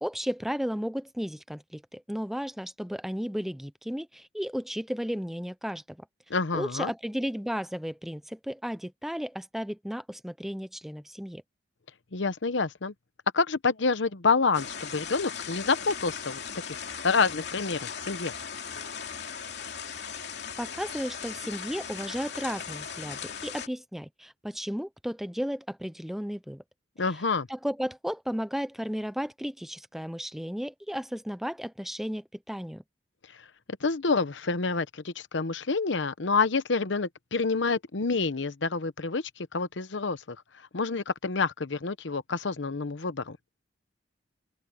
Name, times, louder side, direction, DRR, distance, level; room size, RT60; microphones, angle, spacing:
voice 1, 0.0-6.0 6.5-11.4 20.6-26.6 27.0-27.2 27.5-32.8, equal, ahead, 0.6 m, -34 dB
voice 2, 6.3-6.9 12.1-12.9 13.3-16.4 16.7-18.3 27.0-27.5 33.8-40.4 40.7-43.4, left 4 dB, 85° left, 0.9 m, -28 dB
sound 1, 14.5-23.7, left 7 dB, 65° left, 2.8 m, -38 dB
open air
head